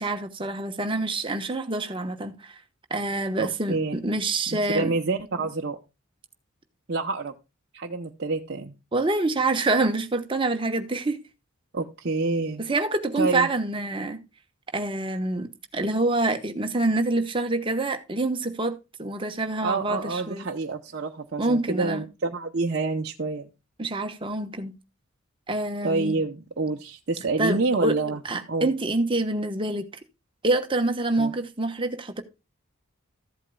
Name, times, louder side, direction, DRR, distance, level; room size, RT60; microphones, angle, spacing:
voice 1, 0.0-2.5 2.9-4.9 8.9-11.2 12.6-14.2 14.7-15.5 15.7-20.5 21.4-22.0 23.8-24.7 25.5-26.2 27.4-28.0 28.2-29.9 30.4-32.2, right 2 dB, 25° right, 1.0 m, -26 dB
voice 2, 3.4-4.0 4.5-5.8 6.9-7.3 7.7-8.7 11.7-12.6 13.2-13.5 19.6-23.5 25.8-28.2 28.5-28.7 31.2-31.3, right 3 dB, 50° right, 0.8 m, -28 dB
14.5 x 8.2 x 2.3 m
head